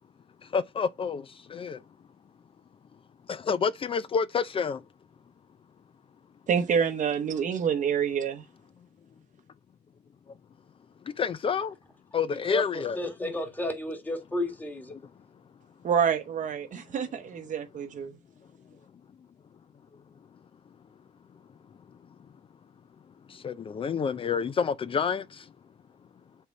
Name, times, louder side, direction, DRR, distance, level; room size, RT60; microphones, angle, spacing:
voice 1, 0.5-1.8 3.3-4.8 11.2-11.7 12.1-13.1 14.9-15.0 23.4-25.4, left 6 dB, 30° left, 0.4 m, -29 dB
voice 2, 6.5-8.4 15.8-18.2, right 7 dB, 50° right, 0.8 m, -27 dB
voice 3, 12.5-14.9, left 1 dB, 10° left, 1.9 m, -32 dB
7.1 x 3.7 x 4.2 m
cardioid pair, 110°, 17 cm